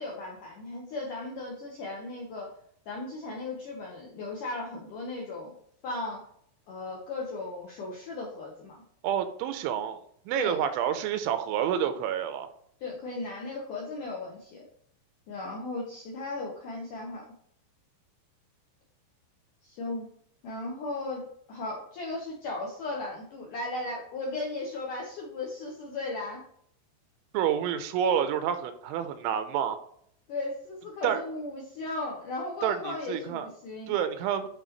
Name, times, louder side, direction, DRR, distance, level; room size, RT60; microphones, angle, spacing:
voice 1, 0.0-2.5 2.9-5.6 5.8-6.2 6.7-8.8 10.4-10.6 12.8-14.6 15.3-17.2 19.6-20.1 20.4-21.2 21.5-26.4 30.3-33.9, left 2 dB, 75° left, -2 dB, 1.9 m, -36 dB
voice 2, 9.0-12.5 27.3-29.8 31.0-31.2 32.6-33.5 33.9-34.5, right 9 dB, 90° right, 9 dB, 3.1 m, -29 dB
11.0 x 4.2 x 3.0 m, 0.68 s
omnidirectional pair, 5.4 m